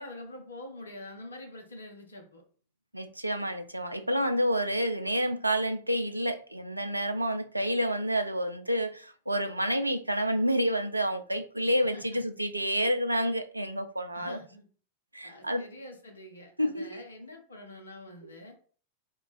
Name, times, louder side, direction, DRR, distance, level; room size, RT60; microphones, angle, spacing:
voice 1, 0.0-2.4 11.9-12.2 14.1-14.7 15.2-18.6, left 1 dB, 75° left, 0.7 m, -45 dB
voice 2, 2.9-14.4 15.1-15.7 16.6-17.0, equal, 85° right, 0.3 m, -29 dB
2.3 x 2.3 x 3.9 m
figure-of-eight pair, 90°, 0 cm